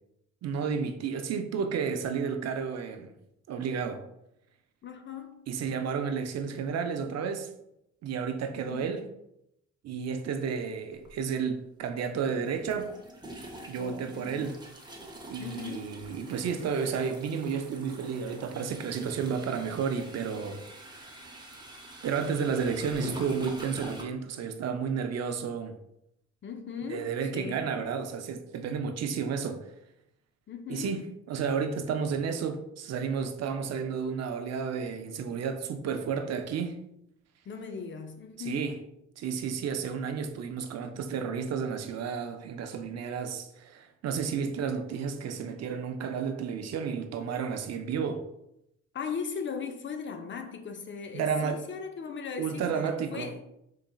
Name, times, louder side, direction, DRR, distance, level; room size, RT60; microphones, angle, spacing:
voice 1, 0.4-3.1 3.5-4.0 5.5-7.5 8.0-9.0 9.8-12.9 13.7-14.6 15.3-20.6 20.9-21.2 22.0-25.7 26.9-29.6 30.7-31.0 31.3-36.8 38.4-38.8 39.2-48.2 51.1-51.6 52.4-53.3, right 6 dB, 60° right, 0.5 m, -32 dB
voice 2, 4.8-5.4 8.7-8.8 13.8-14.4 15.4-16.0 23.0-23.2 26.4-27.7 30.5-31.0 37.5-38.8 48.9-53.4, left 6 dB, 40° left, 0.5 m, -38 dB
sound 1, 11.0-11.1 12.5-24.0, right 1 dB, 15° right, 0.7 m, -45 dB
3.8 x 3.8 x 2.3 m
cardioid pair, 90°, 30 cm